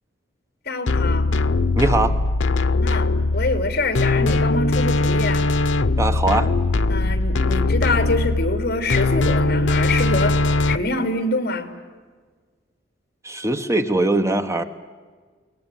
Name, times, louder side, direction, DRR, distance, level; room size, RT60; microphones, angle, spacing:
voice 1, 0.6-1.4 2.8-5.4 6.9-10.4 10.7-11.7, left 2 dB, 55° left, 8 dB, 2.9 m, -25 dB
sound 1, 0.9-10.8, left 2 dB, 80° left, 0.7 m, -20 dB
voice 2, 1.8-2.1 6.0-6.5 13.2-14.6, right 2 dB, 15° right, 7 dB, 1.0 m, -21 dB
23.0 x 19.0 x 9.1 m, 1.5 s
head